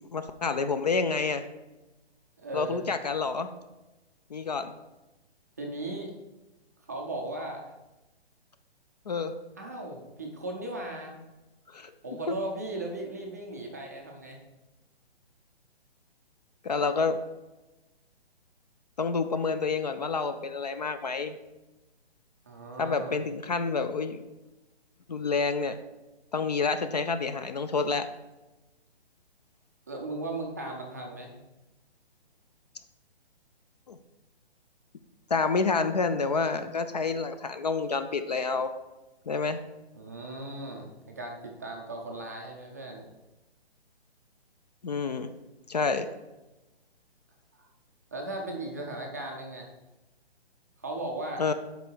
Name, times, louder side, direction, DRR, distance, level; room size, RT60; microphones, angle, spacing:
voice 1, 0.1-1.5 2.5-3.5 4.3-4.7 9.1-9.3 11.7-11.9 12.3-12.4 16.6-17.2 19.0-21.4 22.8-24.2 25.1-25.8 26.3-28.1 33.9-34.0 35.3-38.7 39.3-39.6 44.8-45.3 45.7-46.1 51.4-51.5, left 4 dB, 40° left, 10 dB, 0.4 m, -28 dB
voice 2, 2.4-2.8 5.6-6.1 6.9-7.7 9.6-11.2 12.0-14.4 22.5-23.2 29.9-31.4 39.9-43.1 47.6-47.7 48.1-49.7 50.8-51.4, right 2 dB, 15° right, 0 dB, 0.4 m, -37 dB
8.1 x 5.1 x 4.5 m, 1.1 s
hypercardioid pair, 160°, 32 cm